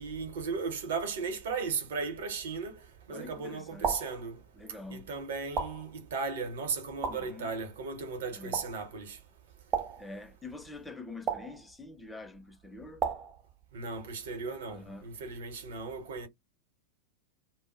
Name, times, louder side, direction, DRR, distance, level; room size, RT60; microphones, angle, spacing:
voice 1, 0.0-2.8 3.1-4.4 4.9-9.2 13.7-16.3, right 4 dB, 60° right, 0.9 m, -36 dB
voice 2, 3.1-4.1 4.6-5.1 7.1-7.5 8.3-8.6 10.0-13.0 14.7-15.1, left 3 dB, 10° left, 0.4 m, -46 dB
sound 1, 3.8-4.2 5.6-6.0 7.0-7.4 8.5-8.8 9.7-10.1 11.3-11.6 13.0-13.4, right 6 dB, 30° right, 0.6 m, -33 dB
2.1 x 2.0 x 2.9 m
figure-of-eight pair, 90°, 0 cm